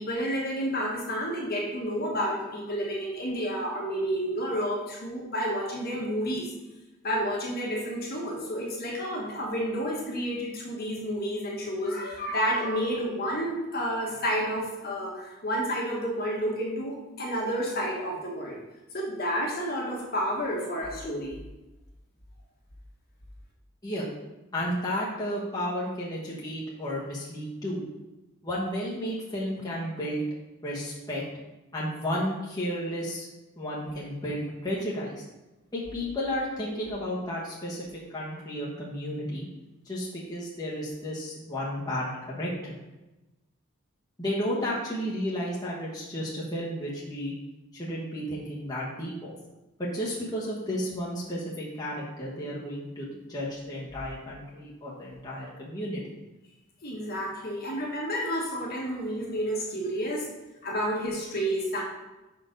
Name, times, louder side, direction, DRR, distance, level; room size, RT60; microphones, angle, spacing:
voice 1, 0.0-6.5 7.0-18.6 18.9-21.4 56.8-60.3 60.6-61.8, equal, 45° left, -2 dB, 1.4 m, -30 dB
voice 2, 24.5-27.8 28.4-30.2 30.6-31.2 31.7-33.3 33.6-35.2 35.7-39.5 39.8-42.8 44.2-47.3 47.7-49.3 49.8-56.1, equal, 20° left, -6 dB, 1.1 m, -32 dB
5.3 x 4.4 x 5.2 m, 1.0 s
head